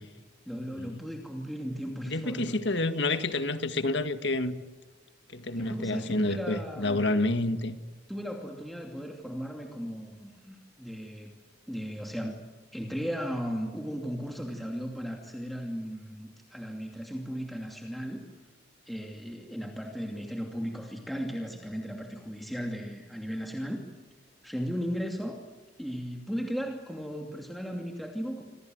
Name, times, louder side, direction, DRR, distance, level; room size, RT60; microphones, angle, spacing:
voice 1, 0.5-2.6 5.6-7.0 8.1-11.3 11.7-12.4 12.7-18.3 18.9-23.9 24.4-25.4 25.8-28.4, equal, ahead, 2.6 m, -36 dB
voice 2, 2.0-4.6 5.3-7.8, left 2 dB, 60° left, 1.9 m, -29 dB
28.5 x 26.0 x 7.9 m
head